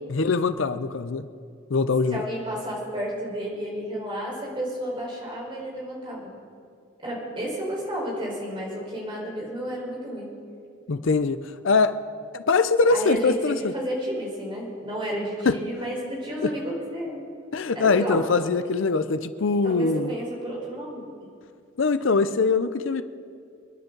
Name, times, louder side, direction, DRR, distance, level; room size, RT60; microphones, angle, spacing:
voice 1, 0.1-1.3 1.7-2.2 10.9-11.4 11.6-11.9 12.3-13.7 15.5-15.6 16.4-16.5 17.5-20.1 21.8-23.0, left 4 dB, 70° left, 12 dB, 0.6 m, -22 dB
voice 2, 2.1-6.3 7.0-10.3 12.9-17.2 17.7-18.2 19.6-21.0, right 1 dB, 25° right, -4 dB, 4.7 m, -31 dB
29.0 x 10.5 x 3.9 m, 2.4 s
head